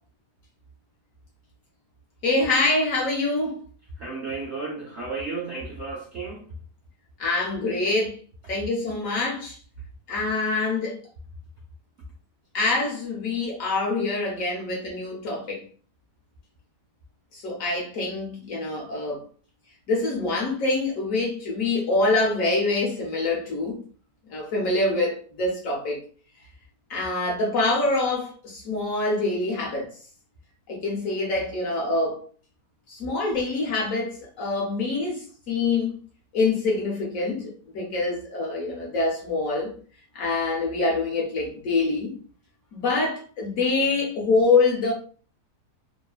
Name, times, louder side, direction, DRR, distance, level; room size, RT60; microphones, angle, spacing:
voice 1, 2.2-3.6 7.2-8.2 8.5-9.6 10.1-11.0 12.5-15.6 17.3-19.2 19.9-23.8 24.3-26.0 26.9-29.9 30.7-32.3 32.9-36.0 36.3-39.7 40.1-42.1 42.7-44.9, left 3 dB, 60° left, 1.0 m, -25 dB
voice 2, 4.0-6.5, right 4 dB, 70° right, 0.6 m, -33 dB
2.9 x 2.0 x 2.3 m
omnidirectional pair, 1.8 m